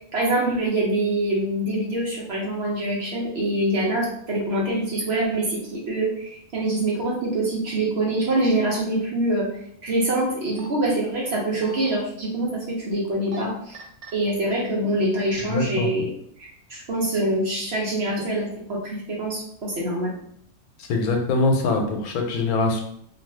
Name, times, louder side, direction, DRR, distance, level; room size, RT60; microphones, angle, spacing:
voice 1, 0.1-13.8 14.1-16.1 16.4-20.2, right 1 dB, 55° right, -3 dB, 0.9 m, -25 dB
sound 1, 10.3-10.7 11.4-11.9 13.1-13.4 13.7-14.1 14.8-15.3 15.7-15.8, right 2 dB, 90° right, 1.1 m, -40 dB
voice 2, 15.5-15.9 20.9-22.8, left 3 dB, 90° left, 3 dB, 1.1 m, -23 dB
2.6 x 2.4 x 3.2 m, 0.68 s
omnidirectional pair, 1.5 m